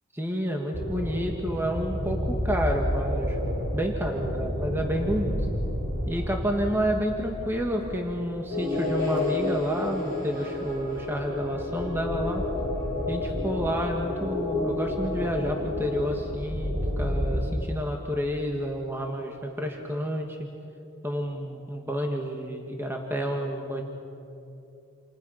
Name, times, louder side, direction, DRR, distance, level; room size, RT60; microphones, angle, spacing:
voice 1, 0.1-3.4 3.7-5.5 6.1-12.4 13.1-20.5 21.0-23.8, equal, 10° right, 2 dB, 1.7 m, -30 dB
sound 1, 0.7-17.5, equal, 55° right, 6.3 m, -32 dB
sound 2, 8.5-16.0, left 2 dB, 40° right, 6.2 m, -31 dB
29.0 x 28.0 x 5.7 m, 2.7 s
head